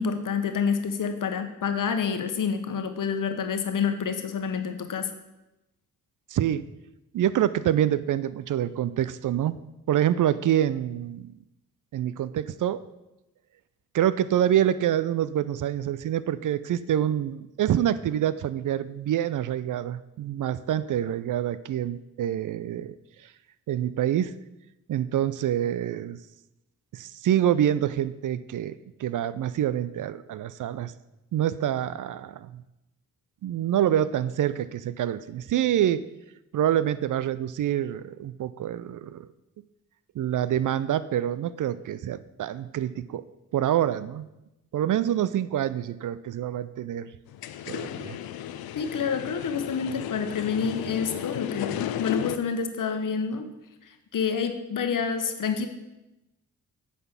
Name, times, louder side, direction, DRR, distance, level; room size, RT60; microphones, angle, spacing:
voice 1, 0.0-5.1 48.7-53.5 54.1-55.7, left 6 dB, 55° left, 7 dB, 1.2 m, -28 dB
voice 2, 6.3-6.7 7.1-9.6 9.9-11.3 11.9-12.8 13.9-22.9 23.7-24.3 24.9-26.2 26.9-30.9 31.3-32.6 33.4-36.0 36.5-39.3 40.1-43.2 43.5-44.3 44.7-47.1 47.7-48.2, right 11 dB, 55° right, 16 dB, 0.5 m, -26 dB
sound 1, 47.3-52.4, left 11 dB, 70° left, 0.6 m, -34 dB
9.2 x 4.2 x 7.0 m, 0.94 s
supercardioid pair, 50°, 37 cm